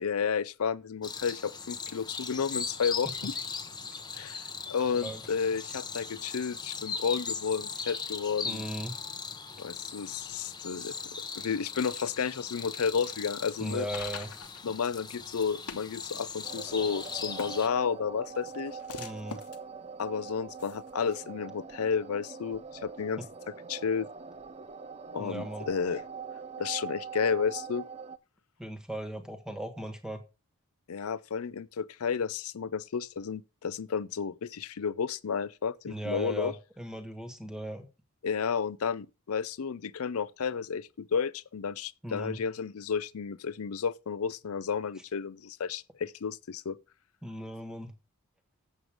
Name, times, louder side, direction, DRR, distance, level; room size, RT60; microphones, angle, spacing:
voice 1, 0.0-3.3 4.1-4.4 4.7-8.6 9.6-10.9 11.4-13.9 14.6-18.8 20.0-23.2 23.7-24.1 25.1-26.0 26.6-27.8 30.9-36.5 38.2-46.8, left 6 dB, 65° left, 0.5 m, -32 dB
sound 1, 1.0-17.7, left 5 dB, 20° left, 0.9 m, -39 dB
voice 2, 8.4-8.9 13.6-14.3 19.0-19.4 25.2-25.7 28.6-30.2 35.9-37.9 42.0-42.4 47.2-47.9, right 1 dB, 5° right, 1.4 m, -37 dB
sound 2, 13.0-21.2, left 5 dB, 90° left, 1.1 m, -47 dB
sound 3, 16.4-28.2, right 5 dB, 30° right, 0.5 m, -43 dB
7.9 x 7.5 x 4.9 m
head